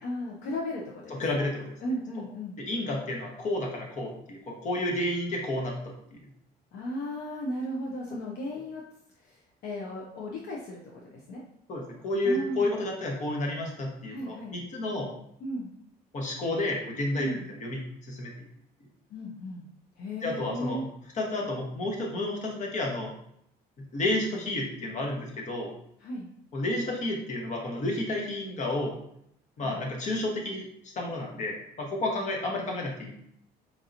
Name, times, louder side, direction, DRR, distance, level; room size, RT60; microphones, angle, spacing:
voice 1, 0.0-1.4 1.8-2.6 6.7-8.8 9.2-11.4 12.2-12.8 14.1-14.6 15.4-15.7 17.2-17.4 19.1-19.6 20.0-20.8 26.0-26.3 29.6-29.8, equal, 70° left, -2 dB, 0.6 m, -35 dB
voice 2, 1.2-1.6 2.7-5.8 6.1-6.2 11.7-15.1 16.1-18.3 20.2-20.8 21.2-23.1 23.9-25.7 26.5-28.9 29.6-30.7 30.9-33.1, left 1 dB, 45° left, 0 dB, 1.1 m, -31 dB
4.5 x 2.8 x 2.5 m, 0.73 s
cardioid pair, 110°, 17 cm